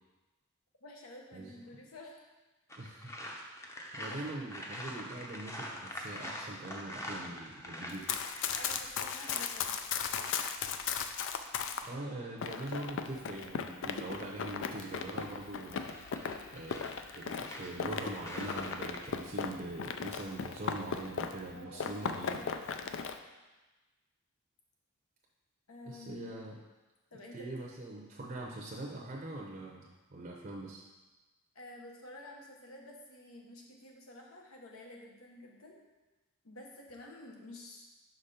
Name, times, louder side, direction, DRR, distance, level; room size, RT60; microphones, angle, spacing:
voice 1, 0.8-2.2 4.0-4.5 8.5-9.8 21.5-22.5 22.8-23.1 25.7-26.4 27.1-27.7 31.5-35.8 36.4-37.8, left 2 dB, 85° left, 0 dB, 1.1 m, -50 dB
sound 1, 2.7-12.6 14.7-19.1, equal, 15° left, 0.6 m, -46 dB
voice 2, 2.8-3.1 3.5-3.7 3.9-8.1 11.9-16.0 16.5-22.4 25.9-26.6 27.3-30.8, right 2 dB, 40° right, -2 dB, 0.7 m, -43 dB
Run, 7.9-11.9 12.4-21.5 21.8-23.2, left 6 dB, 60° left, 0.4 m, -37 dB
6.0 x 5.1 x 4.2 m, 1.2 s
head